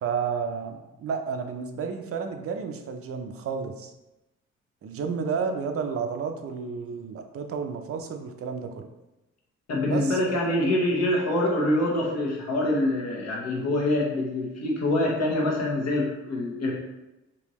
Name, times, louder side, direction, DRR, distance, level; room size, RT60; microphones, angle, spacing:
voice 1, 0.0-3.9 4.8-8.9 9.9-10.2, right 6 dB, 50° right, 6 dB, 0.5 m, -31 dB
voice 2, 9.7-16.7, left 1 dB, 60° left, -2 dB, 1.1 m, -25 dB
3.4 x 2.8 x 3.0 m, 0.99 s
cardioid pair, 90°, 30 cm